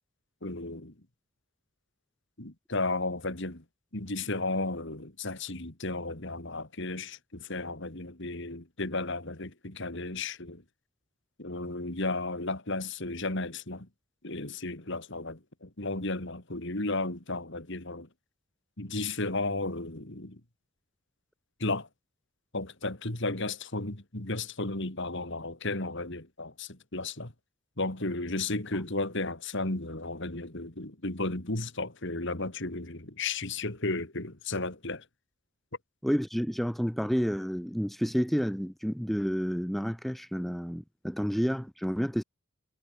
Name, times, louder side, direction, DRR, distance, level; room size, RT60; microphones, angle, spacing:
voice 1, 0.4-0.9 2.4-3.6 3.9-10.6 11.4-13.9 14.2-18.1 18.8-20.4 21.6-21.9 22.5-27.3 27.8-35.0, left 2 dB, 55° left, 2.8 m, -34 dB
voice 2, 36.0-42.2, equal, ahead, 0.8 m, -30 dB
head